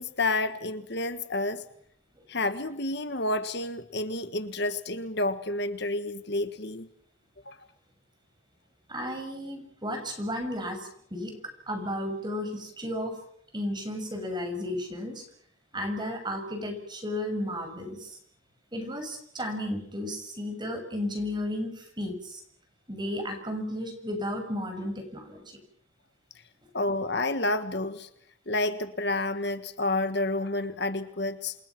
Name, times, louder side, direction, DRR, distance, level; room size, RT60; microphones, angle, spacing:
voice 1, 0.0-1.6 2.3-6.9 7.4-7.6 26.7-28.1 28.5-31.5, left 2 dB, 55° left, 10 dB, 1.5 m, -29 dB
voice 2, 8.9-11.3 11.7-13.2 13.5-15.2 15.7-18.2 18.7-22.4 22.9-25.6, left 1 dB, 20° right, 5 dB, 6.7 m, -33 dB
28.5 x 27.5 x 6.0 m, 0.67 s
head